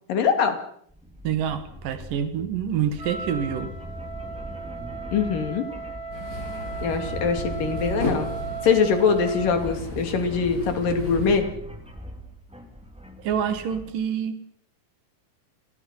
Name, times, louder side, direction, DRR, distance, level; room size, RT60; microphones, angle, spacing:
voice 1, 0.1-0.6 5.1-5.7 6.8-8.3 8.6-11.5, left 6 dB, 75° left, 6 dB, 4.4 m, -23 dB
sound 1, 0.9-13.9, equal, ahead, 2.7 m, -41 dB
voice 2, 1.2-3.7 13.2-14.4, right 8 dB, 75° right, 10 dB, 3.4 m, -27 dB
Wind instrument woodwind instrument, 3.0-9.8, right 4 dB, 35° right, 4.3 m, -36 dB
sound 2, 6.1-11.4, left 1 dB, 25° left, 7.2 m, -34 dB
29.0 x 20.5 x 5.7 m, 0.65 s
omnidirectional pair, 3.9 m